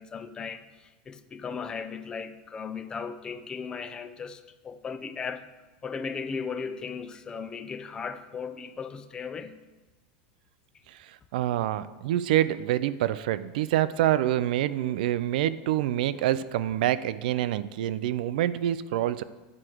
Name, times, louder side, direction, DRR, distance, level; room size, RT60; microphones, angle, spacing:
voice 1, 0.0-5.5 5.8-9.6, left 5 dB, 15° left, 0.4 m, -37 dB
voice 2, 10.9-19.2, right 12 dB, 75° right, 0.4 m, -26 dB
9.9 x 4.8 x 4.5 m
supercardioid pair, 160°, 5 cm